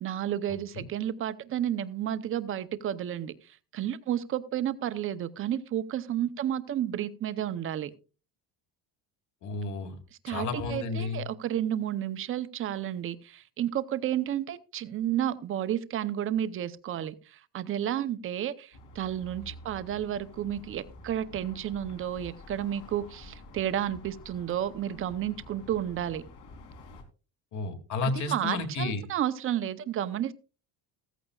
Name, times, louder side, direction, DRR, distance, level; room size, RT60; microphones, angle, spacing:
voice 1, 0.0-7.9 10.2-26.2 28.0-30.3, right 11 dB, 30° right, 13 dB, 0.7 m, -31 dB
voice 2, 9.4-9.9 10.3-11.2 27.5-29.0, left 3 dB, 45° left, 6 dB, 2.3 m, -32 dB
sound 1, 18.7-27.0, left 2 dB, 70° left, 3.6 m, -49 dB
15.5 x 14.0 x 2.4 m, 0.34 s
cardioid pair, 170°, 40 cm